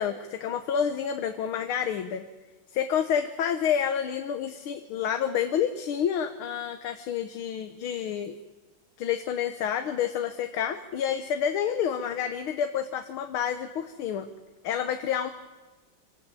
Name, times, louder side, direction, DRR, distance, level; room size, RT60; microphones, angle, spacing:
voice 1, 0.0-2.3 2.7-8.3 9.0-14.3 14.6-15.3, left 8 dB, 80° left, 7 dB, 1.8 m, -29 dB
26.5 x 17.5 x 8.3 m, 1.3 s
omnidirectional pair, 2.3 m